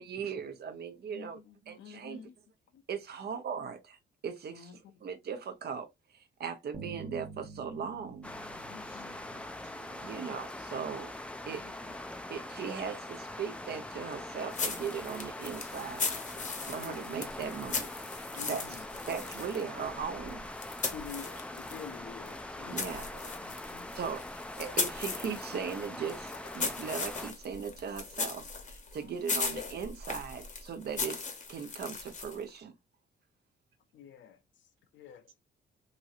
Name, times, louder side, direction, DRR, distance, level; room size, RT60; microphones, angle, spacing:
voice 1, 0.0-1.4 1.7-2.2 2.9-4.0 4.2-4.7 5.0-5.9 6.1-8.3 10.0-11.1 11.5-11.6 12.3-12.9 13.4-16.1 16.6-18.1 18.4-18.8 19.1-20.6 22.7-23.1 23.9-28.4 28.7-31.2 31.5-32.7, right 6 dB, 55° right, 0.8 m, -38 dB
voice 2, 1.1-2.3 4.5-4.9 8.7-9.2 11.6-11.7 16.7-17.2 18.4-18.8 20.9-23.1 23.4-23.9 29.0-29.1 33.9-34.4 34.9-35.3, left 7 dB, 70° left, 0.7 m, -48 dB
Bass guitar, 6.7-9.8, right 4 dB, 20° right, 1.1 m, -48 dB
sound 1, 8.2-27.3, left 1 dB, 5° left, 0.4 m, -43 dB
voice 3, 8.8-10.4 12.7-13.0 21.3-21.4 23.1-23.2 24.9-25.0 35.3-35.4, right 7 dB, 80° right, 0.9 m, -57 dB
sound 2, 14.5-21.9 22.2-32.5, left 4 dB, 40° left, 0.9 m, -38 dB
3.0 x 2.7 x 2.4 m
cardioid pair, 90°, 20 cm